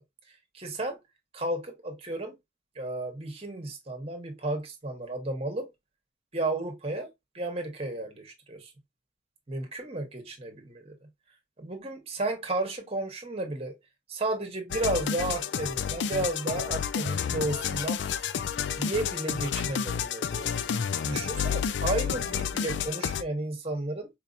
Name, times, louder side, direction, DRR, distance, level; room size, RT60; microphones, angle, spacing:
voice 1, 0.5-1.0 1.3-2.4 2.7-5.7 6.3-7.1 7.3-8.7 9.5-11.1 11.6-13.7 14.1-18.0 18.8-20.5 21.0-24.1, right 2 dB, 30° right, 1.1 m, -33 dB
sound 1, 14.7-23.2, left 7 dB, 65° left, 0.3 m, -30 dB
4.5 x 2.8 x 2.4 m
head